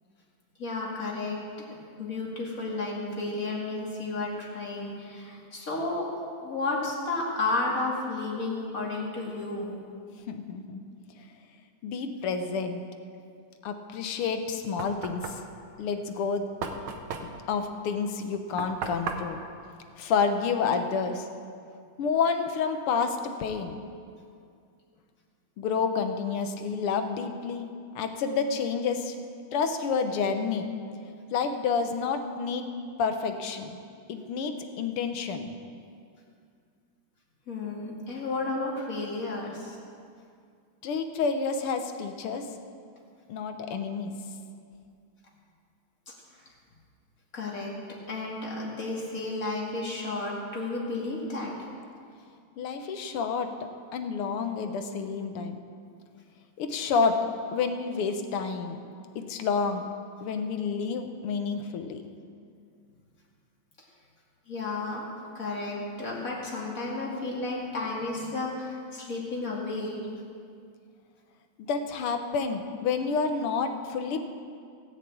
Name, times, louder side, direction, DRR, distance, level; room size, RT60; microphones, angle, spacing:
voice 1, 0.6-1.4 2.0-6.1 6.4-9.8 37.5-39.8 46.1-46.2 47.3-51.5 64.5-65.0 65.3-70.0, left 2 dB, 40° left, -3 dB, 2.7 m, -32 dB
voice 2, 10.3-10.8 11.8-12.8 13.6-15.4 15.8-16.5 17.2-19.4 20.0-21.3 22.0-23.8 25.6-27.7 28.0-29.2 29.5-30.7 31.3-32.7 33.0-33.8 34.1-35.5 40.8-42.5 43.3-44.1 52.6-53.5 53.9-55.6 56.6-57.2 57.5-58.9 59.2-59.9 60.2-62.0 71.6-74.2, left 5 dB, 90° left, 7 dB, 1.9 m, -29 dB
Knock, 14.2-20.7, right 5 dB, 75° right, 1.8 m, -38 dB
17.0 x 6.5 x 8.6 m, 2.3 s
omnidirectional pair, 2.4 m